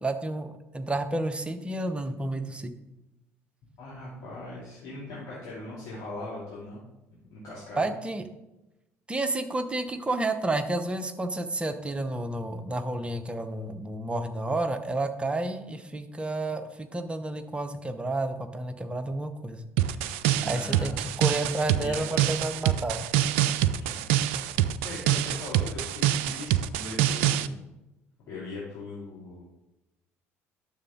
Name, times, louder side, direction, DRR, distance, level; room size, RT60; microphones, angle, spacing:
voice 1, 0.0-2.7 7.8-8.2 9.1-19.6 20.4-23.0, right 2 dB, 15° right, 8 dB, 0.9 m, -30 dB
voice 2, 3.8-6.8 7.3-7.9 20.4-21.1 21.8-22.7 23.6-23.9 24.8-27.6 28.3-29.4, left 2 dB, 50° left, -7 dB, 2.8 m, -40 dB
sound 1, 19.8-27.5, right 11 dB, 65° right, 0.4 m, -26 dB
10.0 x 6.8 x 3.8 m, 0.95 s
figure-of-eight pair, 55°, 7 cm